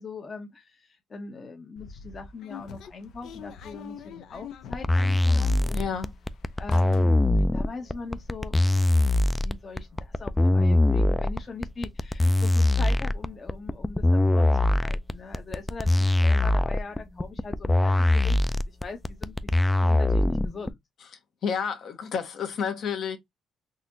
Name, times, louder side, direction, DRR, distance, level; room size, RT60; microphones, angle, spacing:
voice 1, 0.0-5.8 6.6-7.2 7.5-19.5 19.8-20.8, left 3 dB, 35° left, 0.8 m, -41 dB
sound 1, 1.8-6.2 6.5-7.4 7.8-7.9 8.0-8.3, left 7 dB, 80° left, 0.7 m, -44 dB
sound 2, 4.7-20.7, left 1 dB, 10° left, 0.3 m, -22 dB
voice 2, 5.7-6.1 21.0-21.1 21.4-23.2, left 6 dB, 65° left, 1.1 m, -30 dB
4.0 x 2.8 x 2.6 m
cardioid pair, 115°, 0 cm